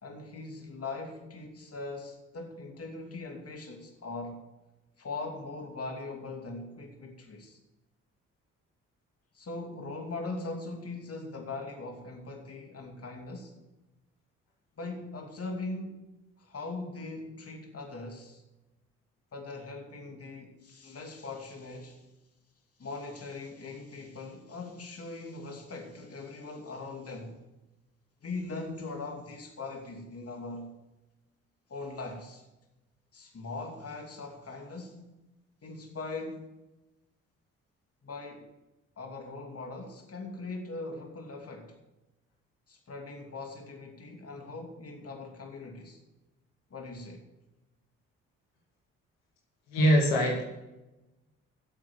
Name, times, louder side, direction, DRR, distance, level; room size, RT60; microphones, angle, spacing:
voice 1, 0.0-4.5 5.0-7.6 9.3-13.5 14.8-16.0 16.4-18.4 19.3-22.1 22.8-27.4 28.2-30.8 31.7-32.4 33.1-35.1 35.6-36.5 38.0-38.5 39.0-41.8 42.7-46.0 46.7-47.2, left 3 dB, 40° left, 2.7 m, -40 dB
voice 2, 49.7-50.4, equal, 80° left, 2.3 m, -23 dB
11.0 x 8.2 x 7.7 m
hypercardioid pair, 45°, 35 cm